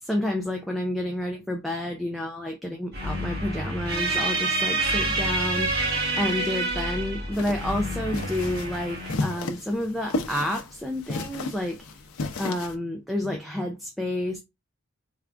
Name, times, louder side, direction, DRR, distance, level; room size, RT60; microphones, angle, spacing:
voice 1, 0.0-5.9 6.2-12.0 12.4-14.4, left 1 dB, ahead, 0.3 m, -30 dB
sound 1, 2.9-9.2, right 2 dB, 45° right, 1.5 m, -28 dB
sound 2, 7.3-12.8, left 2 dB, 90° left, 0.5 m, -33 dB
3.6 x 2.3 x 3.3 m
head